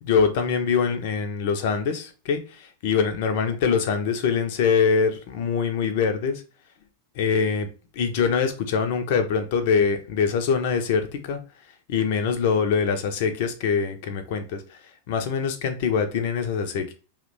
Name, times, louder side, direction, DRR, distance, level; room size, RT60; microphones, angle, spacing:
voice 1, 0.0-6.4 7.2-7.7 8.0-11.4 11.9-14.8 15.1-16.9, left 6 dB, 50° left, 0.5 m, -24 dB
2.8 x 2.1 x 3.8 m
figure-of-eight pair, 90°, 0 cm